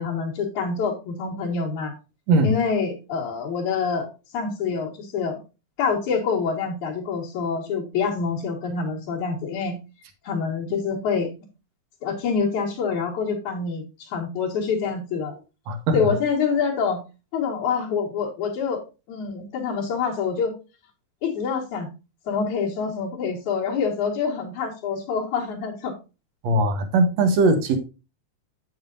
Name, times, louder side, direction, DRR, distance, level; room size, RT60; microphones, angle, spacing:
voice 1, 0.0-1.9 2.4-5.4 5.8-9.8 10.2-11.3 12.0-15.3 15.9-17.0 17.3-18.8 19.1-20.6 21.2-21.9 22.3-25.9, left 5 dB, 85° left, -6 dB, 3.1 m, -26 dB
voice 2, 15.7-16.1 26.4-27.8, right 2 dB, 65° right, 7 dB, 2.3 m, -20 dB
8.7 x 7.3 x 2.6 m, 0.29 s
omnidirectional pair, 3.3 m